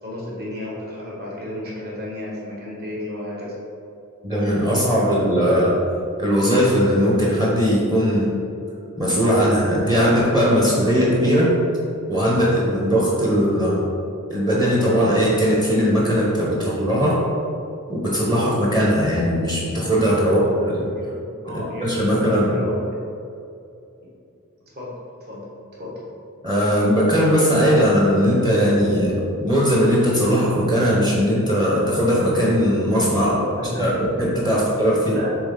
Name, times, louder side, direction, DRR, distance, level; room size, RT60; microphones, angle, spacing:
voice 1, 0.0-3.5 5.3-5.5 20.2-20.7 20.9-22.8 24.7-25.0 25.3-25.5 25.7-26.0 33.2-34.1 34.5-34.7 35.1-35.4, left 1 dB, 45° right, -6 dB, 1.5 m, -32 dB
voice 2, 4.2-5.7 6.2-8.4 9.0-11.5 12.1-13.8 14.3-17.2 17.9-20.9 21.5-22.6 26.4-33.3 33.8-35.1, equal, 20° right, -6 dB, 0.9 m, -19 dB
7.0 x 3.6 x 3.8 m, 2.6 s
head